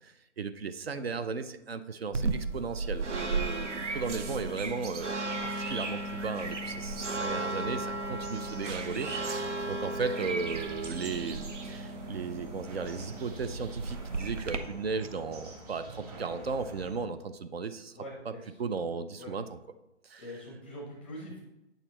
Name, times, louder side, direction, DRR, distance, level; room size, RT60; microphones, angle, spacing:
voice 1, 0.0-18.0 18.3-18.4 18.6-19.6 20.0-20.3, right 5 dB, 60° right, 11 dB, 0.6 m, -36 dB
sound 1, 2.1-14.6, right 2 dB, 90° right, 0.9 m, -35 dB
sound 2, 6.3-17.0, right 1 dB, 35° right, 1.8 m, -46 dB
voice 2, 17.9-18.6 19.2-19.3 20.2-21.4, equal, 10° left, -1 dB, 0.6 m, -44 dB
8.9 x 6.6 x 3.0 m, 0.94 s
hypercardioid pair, 160°, 35 cm